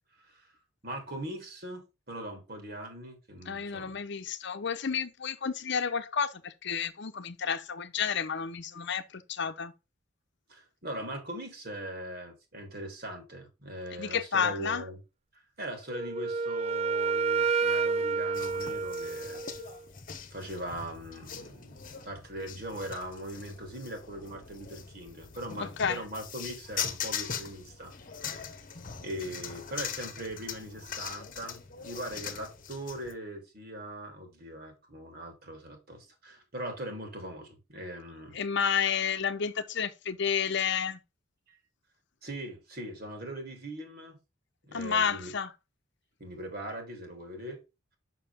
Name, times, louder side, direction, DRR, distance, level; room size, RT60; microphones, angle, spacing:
voice 1, 0.8-4.0 8.7-8.9 10.5-15.0 15.6-19.4 20.3-28.5 29.0-38.4 41.5-41.6 42.2-44.2 44.7-45.3 46.2-47.6, right 1 dB, 50° right, 3.1 m, -40 dB
voice 2, 3.5-9.7 14.0-14.8 25.6-26.0 38.3-41.0 44.7-45.5, left 7 dB, 60° left, 0.8 m, -31 dB
Wind instrument woodwind instrument, 15.9-19.8, right 5 dB, 30° right, 0.3 m, -29 dB
sound 1, 18.3-33.1, left 7 dB, 45° left, 1.2 m, -41 dB
6.7 x 6.0 x 3.5 m
head